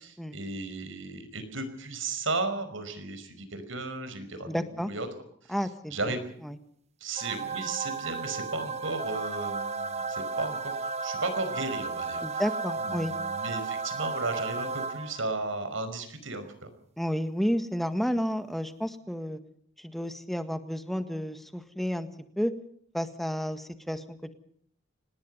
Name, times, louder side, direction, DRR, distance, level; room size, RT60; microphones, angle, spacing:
voice 1, 0.0-5.1 5.4-5.5 5.9-6.2 7.0-12.4 12.8-16.7, right 3 dB, 75° right, 10 dB, 5.3 m, -35 dB
voice 2, 4.5-4.9 5.5-6.1 6.4-6.6 12.2-13.1 17.0-19.4 19.8-22.1 22.4-22.5 22.9-24.3, equal, ahead, 9 dB, 1.7 m, -31 dB
sound 1, 7.2-15.4, right 4 dB, 30° right, 1.1 m, -34 dB
26.0 x 19.5 x 5.6 m, 0.65 s
head